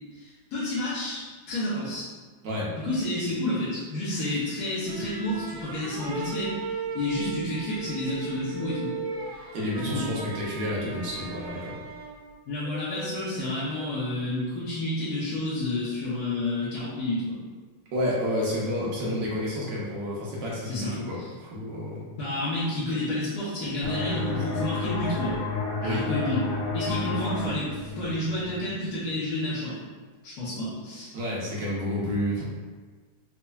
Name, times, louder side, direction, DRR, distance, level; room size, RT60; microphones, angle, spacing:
voice 1, 0.1-2.1 2.8-6.5 6.9-8.9 9.8-10.1 12.5-17.4 19.0-19.4 20.6-21.3 22.2-25.4 25.8-29.8 30.2-31.2, left 1 dB, 60° left, -11 dB, 1.3 m, -30 dB
voice 2, 2.4-2.7 9.5-11.8 17.9-22.0 25.8-26.0 31.1-32.4, left 1 dB, 70° right, -5 dB, 1.4 m, -30 dB
sound 1, 4.8-12.3, right 5 dB, 85° right, 1.4 m, -37 dB
sound 2, 8.6-10.0 12.6-14.0 18.2-19.6 24.2-25.6, left 2 dB, 40° right, 0.7 m, -43 dB
sound 3, 23.8-29.2, left 3 dB, 75° left, 0.7 m, -31 dB
4.3 x 2.7 x 2.3 m, 1.4 s
omnidirectional pair, 2.1 m